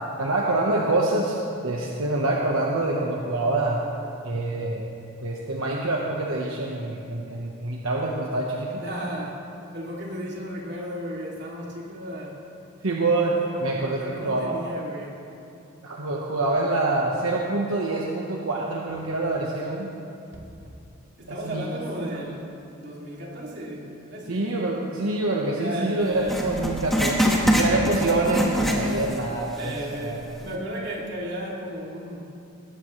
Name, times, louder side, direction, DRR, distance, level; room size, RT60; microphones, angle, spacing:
voice 1, 0.2-1.4 1.6-3.8 4.2-4.8 5.2-8.8 12.8-14.6 15.8-19.9 21.3-21.6 22.0-22.2 24.3-30.2, right 2 dB, 75° right, -2 dB, 1.2 m, -26 dB
voice 2, 8.8-9.4 9.7-12.5 13.4-15.2 20.3-20.6 21.2-24.4 25.6-26.4 29.5-32.4, equal, 50° right, -3 dB, 2.8 m, -34 dB
Writing, 26.2-29.3 29.6-29.7 30.4-30.5, equal, ahead, 1.5 m, -24 dB
20.0 x 16.0 x 3.3 m, 2.6 s
head